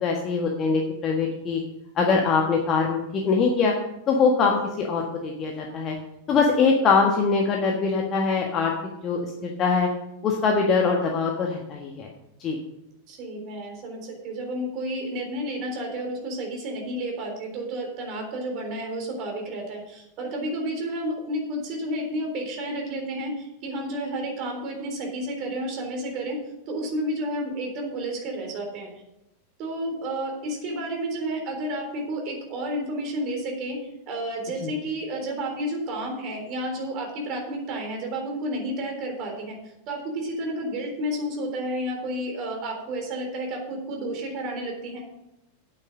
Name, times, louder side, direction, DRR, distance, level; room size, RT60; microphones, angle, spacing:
voice 1, 0.0-1.6 2.0-3.7 4.1-5.9 6.3-8.7 9.0-9.9 10.2-12.1 12.4-12.6 34.6-34.7, left 4 dB, 30° left, 0 dB, 1.5 m, -23 dB
voice 2, 13.1-26.4 26.7-28.9 29.6-33.8 34.1-39.6 39.9-45.0, right 1 dB, 40° right, 1 dB, 3.8 m, -31 dB
9.0 x 8.7 x 6.4 m, 0.89 s
figure-of-eight pair, 90°, 0 cm